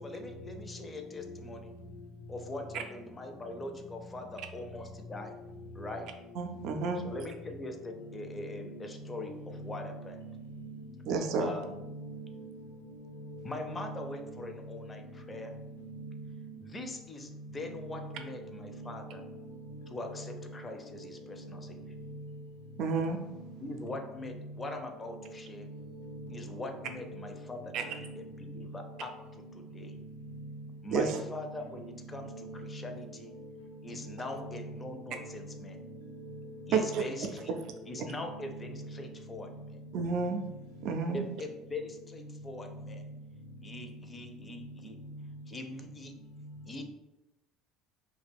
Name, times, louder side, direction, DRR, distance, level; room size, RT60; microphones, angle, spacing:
voice 1, 0.0-1.7 2.3-5.4 5.7-6.1 7.0-10.3 11.4-12.0 13.4-15.6 16.6-19.2 19.9-21.9 23.6-25.7 26.3-30.0 30.8-33.3 33.8-35.8 36.7-37.6 37.8-39.8 41.1-43.1 43.6-45.0 45.5-46.1 46.7-46.8, left 2 dB, 25° left, 0.5 m, -42 dB
voice 2, 6.4-7.0 11.1-11.5 22.8-23.2 27.7-27.8 30.9-31.2 36.7-37.0 39.9-40.4 40.8-41.2, right 5 dB, 60° right, 0.4 m, -30 dB
voice 3, 10.1-10.8 11.6-12.5 13.8-14.0 15.8-16.5 17.6-17.7 18.7-18.9 19.2-19.3 26.0-26.2 27.1-27.2 28.0-28.2 32.2-32.6 34.4-34.5 38.3-38.4, right 2 dB, 85° left, 0.5 m, -44 dB
2.3 x 2.2 x 3.4 m
hypercardioid pair, 70°, 0 cm